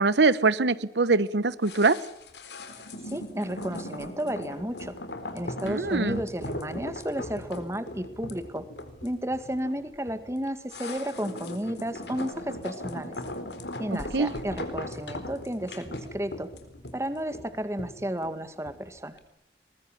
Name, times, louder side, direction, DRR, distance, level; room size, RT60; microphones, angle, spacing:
voice 1, 0.0-2.0 5.6-6.2 14.1-14.3, right 3 dB, 85° right, 17 dB, 1.0 m, -23 dB
sound 1, 1.6-18.9 19.2-19.3, left 1 dB, 80° left, 4.2 m, -39 dB
voice 2, 3.0-5.0 5.3-8.7 9.0-13.2 13.8-16.5 16.9-19.2, equal, 15° right, 11 dB, 1.9 m, -32 dB
23.0 x 21.0 x 9.9 m, 0.72 s
head